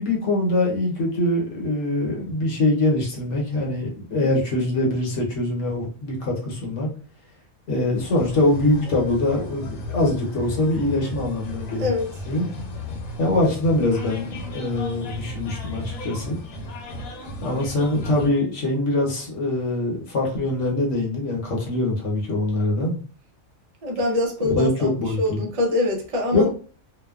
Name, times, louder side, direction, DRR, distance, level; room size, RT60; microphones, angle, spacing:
voice 1, 0.0-6.9 7.7-11.9 12.3-12.5 13.2-16.4 17.4-23.0 24.6-25.4 26.3-26.5, left 2 dB, 65° left, -1 dB, 1.1 m, -23 dB
sound 1, 7.9-18.3, left 1 dB, 85° left, 1.1 m, -35 dB
voice 2, 23.8-24.9 25.2-26.5, left 2 dB, 45° right, 1 dB, 0.5 m, -24 dB
2.8 x 2.2 x 2.3 m, 0.38 s
omnidirectional pair, 1.4 m